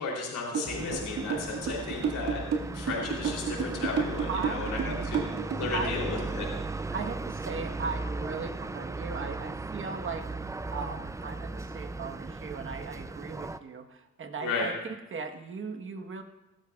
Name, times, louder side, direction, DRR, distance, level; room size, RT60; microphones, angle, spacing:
voice 1, 0.0-2.4 2.7-5.3 5.6-6.5 14.4-14.7, left 4 dB, 75° left, -2 dB, 3.3 m, -34 dB
sound 1, 0.5-5.8, right 6 dB, 55° right, 2.0 m, -31 dB
sound 2, 0.6-13.6, right 3 dB, 10° right, 0.4 m, -36 dB
voice 2, 4.3-4.7 5.7-6.0 6.9-10.2 10.7-16.2, right 5 dB, 40° right, 5 dB, 1.3 m, -37 dB
18.5 x 13.0 x 2.4 m, 0.98 s
cardioid pair, 90°, 31 cm